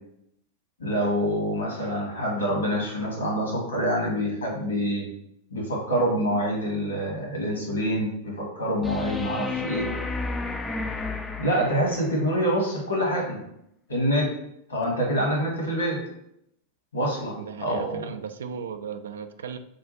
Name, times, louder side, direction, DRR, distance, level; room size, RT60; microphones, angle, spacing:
voice 1, 0.8-5.1 5.5-9.9 11.4-13.4 13.9-14.3 14.7-16.0 16.9-18.1, equal, 75° left, -2 dB, 1.4 m, -26 dB
sound 1, 8.8-12.2 14.8-14.9, left 3 dB, 15° left, 0.3 m, -32 dB
voice 2, 17.4-19.6, right 7 dB, 65° right, 10 dB, 0.3 m, -36 dB
3.7 x 2.3 x 4.1 m, 0.75 s
figure-of-eight pair, 90°, 0 cm